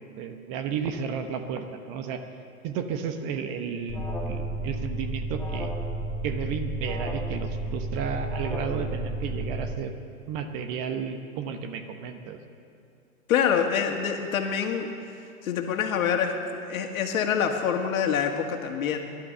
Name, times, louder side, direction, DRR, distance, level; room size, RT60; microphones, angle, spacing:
voice 1, 0.1-2.2 2.6-5.7 6.2-9.9 10.3-12.4, right 6 dB, 35° right, 7 dB, 1.0 m, -33 dB
Alarm, 3.9-9.7, right 2 dB, 5° left, 1.8 m, -32 dB
voice 2, 13.3-14.9 15.4-16.3 16.7-19.0, left 7 dB, 65° left, 4 dB, 2.0 m, -25 dB
17.0 x 12.0 x 6.7 m, 2.5 s
hypercardioid pair, 130°, 44 cm